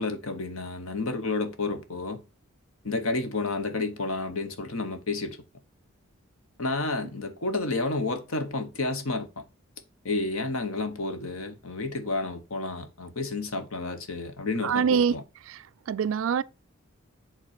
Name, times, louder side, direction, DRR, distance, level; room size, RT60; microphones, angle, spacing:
voice 1, 0.0-2.2 2.8-5.4 6.6-9.4 10.0-15.2, left 3 dB, 80° left, 1.1 m, -30 dB
voice 2, 14.6-15.2 15.5-15.6 15.9-16.4, right 7 dB, 70° right, 0.3 m, -24 dB
7.4 x 3.9 x 4.3 m
head